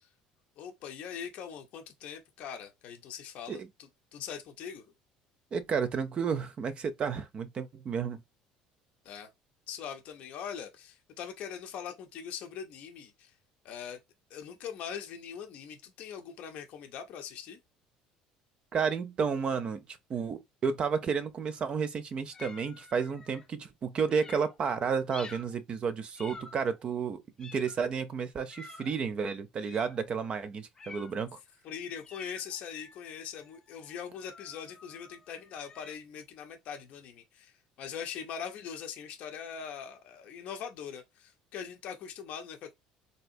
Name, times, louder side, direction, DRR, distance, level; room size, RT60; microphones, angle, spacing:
voice 1, 0.6-4.9 9.0-9.3 9.7-13.3 13.6-14.0 14.3-17.6 31.6-42.7, left 8 dB, 60° left, 0.6 m, -42 dB
voice 2, 5.5-8.2 18.7-31.4, right 6 dB, 40° right, 0.5 m, -32 dB
sound 1, 22.3-23.5 24.1-24.6 25.1-25.6 26.2-26.8 27.4-27.9 28.5-29.0 29.6-30.0 30.7-31.3 32.0-35.9, left 4 dB, 25° left, 0.6 m, -50 dB
3.4 x 2.7 x 2.6 m
supercardioid pair, 90°, 3 cm